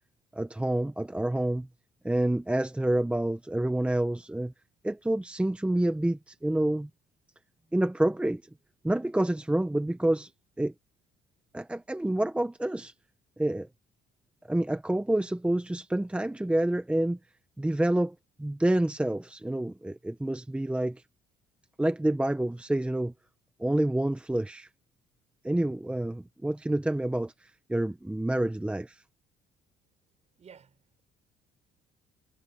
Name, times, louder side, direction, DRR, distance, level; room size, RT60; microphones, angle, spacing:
voice 1, 0.3-1.7 2.0-4.5 4.8-6.9 7.7-8.4 8.8-10.3 10.6-10.7 11.5-12.9 13.4-13.7 14.5-17.2 17.6-21.0 21.8-23.1 23.6-24.7 25.4-29.0, right 1 dB, 5° right, 1.0 m, -28 dB
voice 2, 30.4-31.0, right 7 dB, 40° right, 5.0 m, -53 dB
cardioid pair, 110°, 17 cm